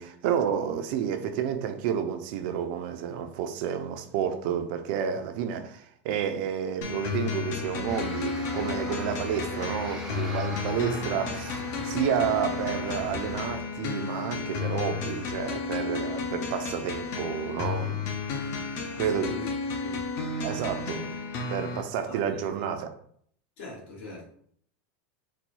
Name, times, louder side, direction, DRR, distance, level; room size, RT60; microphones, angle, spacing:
voice 1, 0.0-18.1 19.0-19.4 20.4-21.1 21.5-22.9, right 8 dB, 50° right, 0.5 m, -30 dB
sound 1, 6.8-21.8, left 5 dB, 40° left, 0.6 m, -33 dB
sound 2, 7.9-13.6, left 1 dB, 5° right, 0.6 m, -40 dB
voice 2, 18.9-19.5 19.8-20.0 22.1-22.6 23.6-24.3, left 3 dB, 60° left, 1.6 m, -42 dB
4.2 x 2.3 x 4.5 m
supercardioid pair, 170°, 7 cm